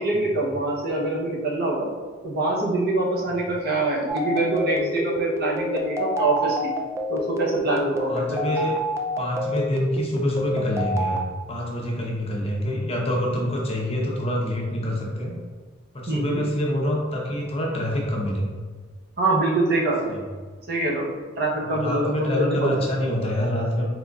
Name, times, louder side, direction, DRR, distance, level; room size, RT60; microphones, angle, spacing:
voice 1, 0.0-1.9 2.2-6.7 7.1-8.5 16.1-16.4 19.2-20.2 20.7-21.1 21.4-22.7, right 2 dB, 50° right, -3 dB, 0.8 m, -24 dB
sound 1, 4.1-11.2, equal, 15° right, 0.3 m, -28 dB
voice 2, 8.0-8.7 9.2-15.4 15.9-18.5 20.1-20.2 21.6-23.9, left 1 dB, 30° left, -2 dB, 0.7 m, -26 dB
4.1 x 3.9 x 2.3 m, 1.4 s
head